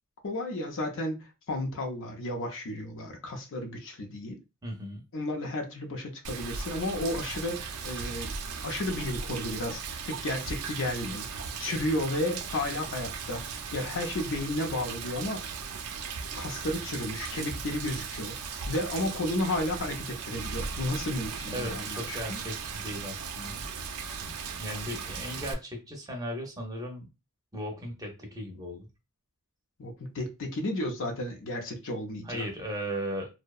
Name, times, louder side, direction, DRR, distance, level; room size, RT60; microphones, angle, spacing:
voice 1, 0.2-4.4 5.1-8.3 8.6-11.3 11.6-15.5 16.3-18.3 18.7-22.4 29.8-32.5, left 1 dB, 60° left, 0.5 m, -33 dB
voice 2, 4.6-5.0 21.5-23.6 24.6-27.1 27.5-28.9 32.2-33.3, equal, 15° right, 0.5 m, -37 dB
Rain, 6.2-25.5, right 5 dB, 90° right, 0.4 m, -37 dB
2.6 x 2.1 x 2.3 m
head